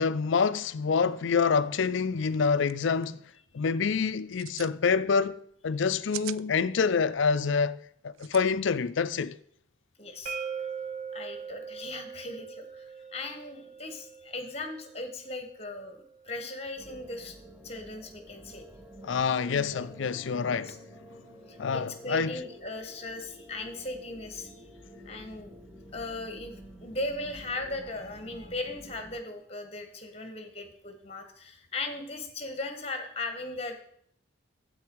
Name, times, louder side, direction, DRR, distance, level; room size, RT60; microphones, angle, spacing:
voice 1, 0.0-3.2 3.5-7.8 8.0-9.4 19.0-20.7 21.6-22.4, left 5 dB, 65° left, 0.4 m, -27 dB
sound 1, 2.3-2.4 2.6-2.7 3.0-3.4 4.2-4.8 5.8-6.4 8.1-8.4, right 15 dB, 85° right, 0.3 m, -40 dB
voice 2, 10.0-10.4 11.1-17.3 17.6-18.6 19.4-19.9 20.4-20.8 21.5-24.7 25.0-25.6 25.9-33.8, left 2 dB, 30° left, 1.4 m, -38 dB
sound 2, 10.3-16.1, right 6 dB, 40° right, 0.7 m, -41 dB
sound 3, 16.8-29.2, equal, 10° right, 1.1 m, -50 dB
9.4 x 7.9 x 4.6 m
head